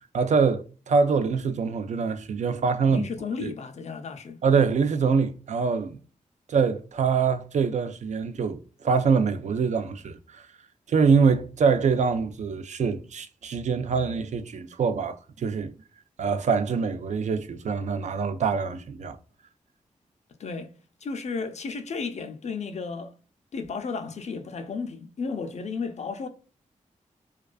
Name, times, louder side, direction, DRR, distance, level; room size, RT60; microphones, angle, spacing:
voice 1, 0.1-3.0 3.4-3.5 4.4-6.0 6.5-10.2 10.9-15.7 16.2-19.2, right 5 dB, 60° right, 0.4 m, -24 dB
voice 2, 2.9-4.4 20.4-20.7 21.0-23.1 23.5-26.3, left 4 dB, 55° left, 0.4 m, -33 dB
2.3 x 2.3 x 2.3 m
cardioid pair, 65°, 14 cm